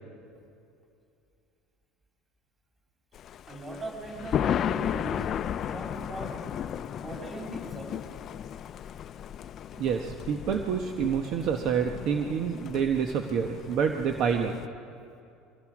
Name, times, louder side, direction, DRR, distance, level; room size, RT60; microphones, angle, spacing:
Thunder, 3.1-14.7, left 9 dB, 40° left, 0.6 m, -35 dB
voice 1, 3.5-5.3 5.7-6.4 7.0-7.9, right 2 dB, 20° right, 1 dB, 6.0 m, -40 dB
voice 2, 9.8-14.5, right 7 dB, 55° right, 4 dB, 1.3 m, -28 dB
24.5 x 19.5 x 6.2 m, 2.5 s
supercardioid pair, 120°, 0 cm